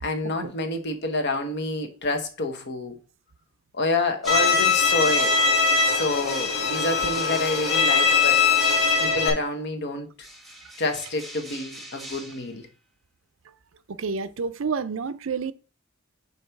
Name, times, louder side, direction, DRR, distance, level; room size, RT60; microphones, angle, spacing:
voice 1, 0.0-3.0 3.7-5.3 5.8-8.5 9.0-10.1 10.8-12.7, left 2 dB, 55° left, 1.2 m, -28 dB
sound 1, 4.2-9.4 10.2-12.6, right 1 dB, ahead, 1.1 m, -40 dB
Bowed string instrument, 4.3-9.3, left 5 dB, 80° left, 1.4 m, -21 dB
voice 2, 14.0-15.5, right 5 dB, 65° right, 0.5 m, -29 dB
5.3 x 4.0 x 5.9 m
head